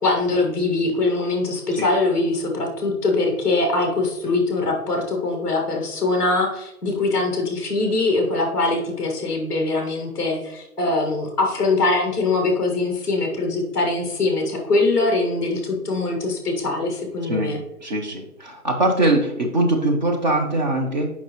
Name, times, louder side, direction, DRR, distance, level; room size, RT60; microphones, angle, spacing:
voice 1, 0.0-17.6, left 3 dB, 5° left, 1 dB, 0.9 m, -22 dB
voice 2, 17.2-17.5 17.8-21.1, right 2 dB, 30° right, 1 dB, 0.8 m, -22 dB
7.7 x 5.5 x 3.0 m, 0.87 s
figure-of-eight pair, 150°, 45 cm